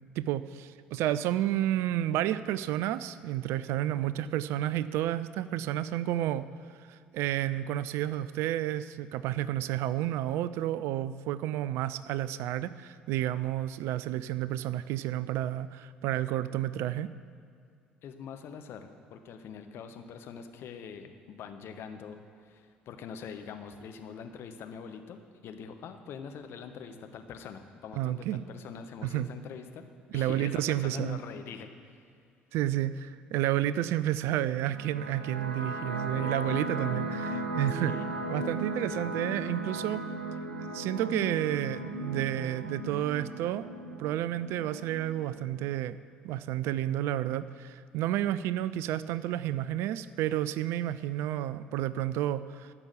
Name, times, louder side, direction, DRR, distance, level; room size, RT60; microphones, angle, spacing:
voice 1, 0.2-6.5 6.9-17.1 28.0-28.4 29.0-29.3 30.1-31.2 32.5-37.9 38.3-40.0 40.6-43.7 44.0-46.0 46.2-52.7, right 13 dB, 60° right, 15 dB, 0.4 m, -31 dB
voice 2, 18.0-29.8 30.1-32.0 37.7-38.1, left 6 dB, 50° left, 6 dB, 1.1 m, -44 dB
sound 1, 34.6-45.6, right 1 dB, 85° right, 0.8 m, -37 dB
13.5 x 6.1 x 8.3 m, 2.2 s
figure-of-eight pair, 55°, 5 cm